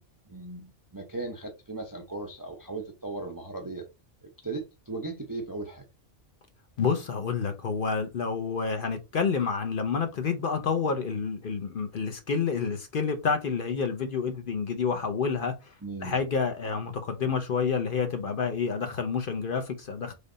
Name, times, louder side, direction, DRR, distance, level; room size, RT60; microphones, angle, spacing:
voice 1, 0.0-3.9 4.2-5.8 15.8-16.2, right 3 dB, 25° right, 0.5 m, -37 dB
voice 2, 6.8-15.5 16.0-20.1, left 5 dB, 55° left, 0.7 m, -29 dB
3.4 x 2.7 x 3.7 m
omnidirectional pair, 1.3 m